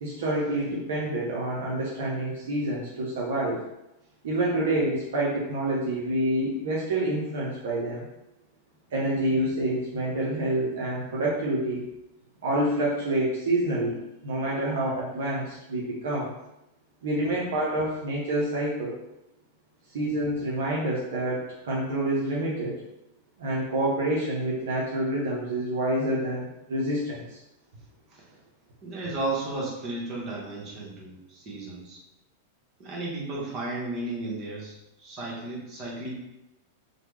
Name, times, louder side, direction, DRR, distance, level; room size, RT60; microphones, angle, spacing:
voice 1, 0.0-3.6 4.2-8.0 8.9-11.8 12.4-14.0 14.2-16.3 17.0-19.0 19.9-22.8 23.4-27.4, right 1 dB, 60° right, -5 dB, 0.6 m, -27 dB
voice 2, 28.8-32.0 32.8-34.7 35.0-36.2, right 2 dB, 35° right, -4 dB, 1.1 m, -34 dB
3.2 x 2.2 x 3.1 m, 0.89 s
figure-of-eight pair, 95°, 0 cm